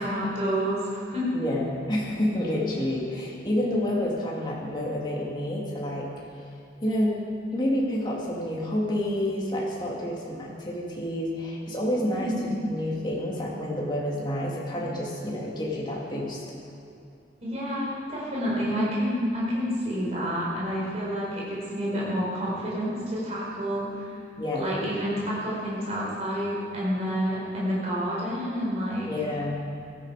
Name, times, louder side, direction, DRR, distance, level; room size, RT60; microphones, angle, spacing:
voice 1, 0.0-1.3 12.1-12.5 17.4-24.1 24.6-29.1, equal, 35° right, -7 dB, 4.6 m, -29 dB
voice 2, 1.3-6.1 6.8-7.2 7.5-16.4 24.4-24.6 29.1-29.6, left 1 dB, 25° left, -4 dB, 2.6 m, -29 dB
17.0 x 13.0 x 5.1 m, 2.5 s
head